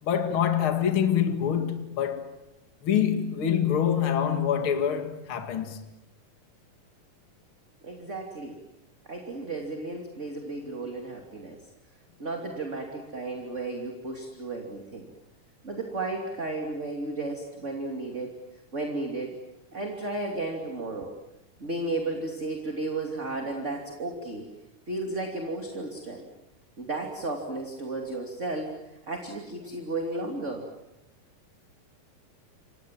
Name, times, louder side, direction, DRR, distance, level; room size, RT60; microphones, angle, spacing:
voice 1, 0.0-2.3 2.8-5.8, left 8 dB, 45° left, 2.6 m, -25 dB
voice 2, 7.8-8.6 9.0-11.7 12.2-15.1 15.6-18.4 18.7-19.4 19.7-21.1 21.6-24.5 24.9-26.3 26.8-28.7 29.1-30.7, right 2 dB, 25° right, 2.9 m, -33 dB
29.0 x 25.0 x 7.6 m
omnidirectional pair, 3.7 m